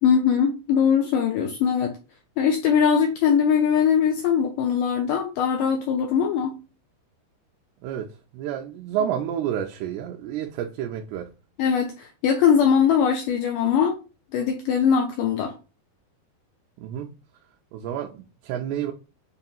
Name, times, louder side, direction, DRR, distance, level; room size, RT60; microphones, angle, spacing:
voice 1, 0.0-2.0 2.4-6.6 11.6-14.0 14.3-15.5, left 7 dB, 85° left, 1.9 m, -21 dB
voice 2, 7.8-11.3 16.8-17.1 17.7-18.9, right 10 dB, 85° right, 2.6 m, -30 dB
6.6 x 2.8 x 2.3 m
omnidirectional pair, 4.5 m